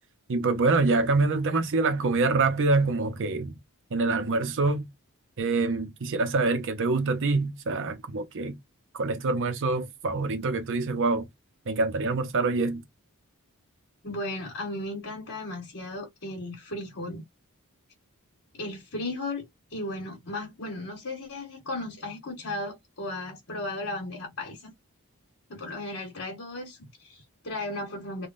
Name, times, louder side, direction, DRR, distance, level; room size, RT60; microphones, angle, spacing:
voice 1, 0.3-3.5 3.9-4.9 5.4-8.6 9.0-11.3 11.7-12.8, right 3 dB, 55° right, 0.6 m, -25 dB
voice 2, 14.0-17.2 18.5-24.7 25.5-28.3, left 2 dB, 60° left, 1.4 m, -35 dB
3.5 x 2.2 x 2.5 m
head